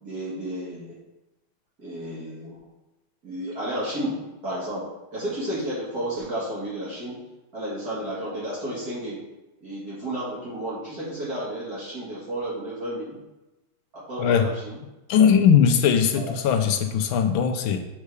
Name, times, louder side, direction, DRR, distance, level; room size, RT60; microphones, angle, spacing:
voice 1, 0.0-1.0 1.8-2.6 3.2-7.2 7.5-9.2 9.6-13.2 13.9-14.8 16.1-16.3, right 1 dB, 45° right, -8 dB, 2.2 m, -32 dB
voice 2, 15.1-17.8, left 7 dB, 75° left, 6 dB, 1.3 m, -19 dB
7.3 x 3.7 x 4.8 m, 1.0 s
omnidirectional pair, 2.4 m